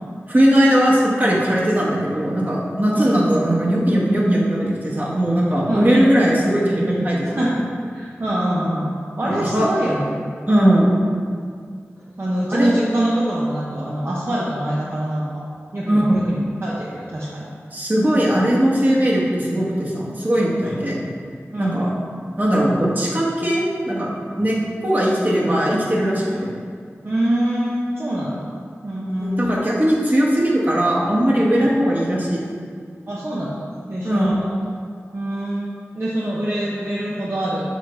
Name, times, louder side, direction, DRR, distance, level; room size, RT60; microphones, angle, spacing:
voice 1, 0.3-7.3 9.2-9.7 10.5-11.0 12.5-12.7 15.8-16.1 17.7-21.0 21.6-21.9 22.4-26.5 29.2-32.5 34.0-34.3, equal, 40° right, -5 dB, 1.4 m, -19 dB
voice 2, 7.9-8.9 9.2-10.2 10.6-10.9 12.0-15.3 15.7-17.4 20.6-20.8 21.5-21.8 26.2-26.4 27.0-28.5 28.8-29.5 31.5-31.7 33.1-34.4 35.1-37.7, right 1 dB, 55° right, -7 dB, 0.8 m, -24 dB
6.7 x 4.4 x 3.2 m, 2.1 s
cardioid pair, 45°, 5 cm